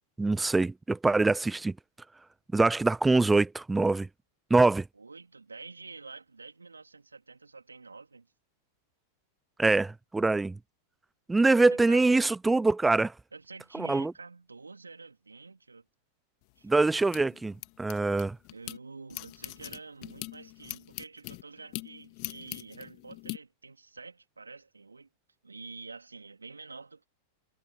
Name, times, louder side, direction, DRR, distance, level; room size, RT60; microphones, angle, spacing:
voice 1, 0.2-1.7 2.5-4.1 4.5-4.9 9.6-10.6 11.3-13.1 13.7-14.1 16.6-18.4, right 3 dB, 10° right, 0.5 m, -24 dB
voice 2, 4.9-8.3 11.7-12.3 13.3-15.8 16.6-16.7 18.5-25.1 25.4-27.0, right 4 dB, 85° right, 3.5 m, -47 dB
sound 1, 16.4-18.8 19.1-23.4, left 32 dB, 50° left, 2.1 m, -42 dB
figure-of-eight pair, 95°, 0 cm